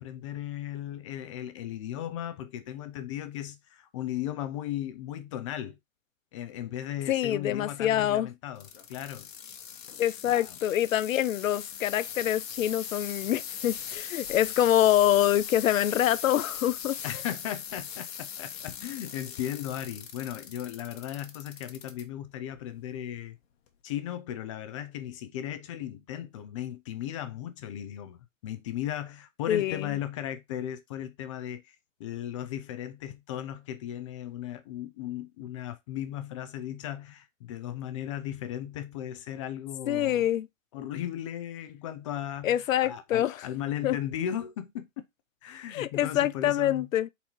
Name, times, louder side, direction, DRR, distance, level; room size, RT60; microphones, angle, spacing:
voice 1, 0.0-5.8 6.3-9.3 10.3-10.6 17.0-23.4 23.8-28.2 28.4-40.3 40.7-44.9 45.4-46.9, left 11 dB, 25° left, 0.4 m, -36 dB
voice 2, 7.1-8.3 10.0-16.9 29.5-29.9 39.9-40.5 42.4-43.4 43.8-44.0 45.7-47.1, left 12 dB, 85° left, 0.5 m, -25 dB
sound 1, 8.6-22.0 22.6-23.0 23.7-23.8, left 8 dB, 50° left, 1.1 m, -40 dB
4.1 x 2.7 x 4.5 m
hypercardioid pair, 135°, 39 cm